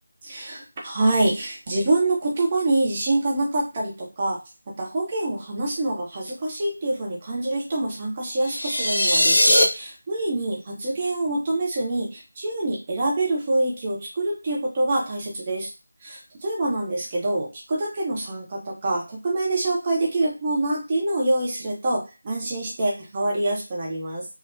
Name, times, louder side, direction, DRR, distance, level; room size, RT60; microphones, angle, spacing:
voice 1, 0.2-4.4 4.8-15.7 16.0-24.3, right 2 dB, 25° right, -2 dB, 0.7 m, -25 dB
sound 1, 8.4-9.6, left 1 dB, 55° left, 1.0 m, -19 dB
3.3 x 2.0 x 2.6 m, 0.28 s
figure-of-eight pair, 165°, 0 cm